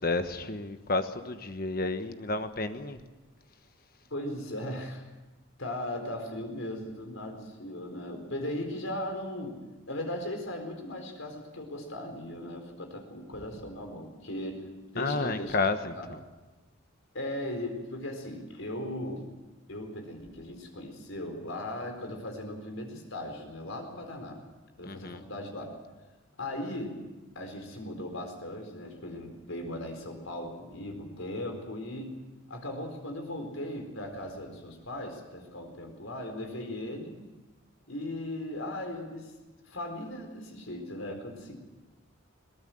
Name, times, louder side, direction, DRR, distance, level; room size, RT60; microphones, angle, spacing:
voice 1, 0.0-3.0 15.0-16.2 24.8-25.2, left 3 dB, 45° left, 9 dB, 1.3 m, -31 dB
voice 2, 4.1-5.0 5.6-9.6 9.9-14.7 14.9-15.6 15.9-16.1 17.1-19.3 19.7-24.4 24.8-25.7 26.4-27.0 27.3-32.2 32.5-37.1 37.9-39.3 39.7-41.6, left 1 dB, 75° left, 4 dB, 4.3 m, -38 dB
22.0 x 18.5 x 7.8 m, 1.2 s
head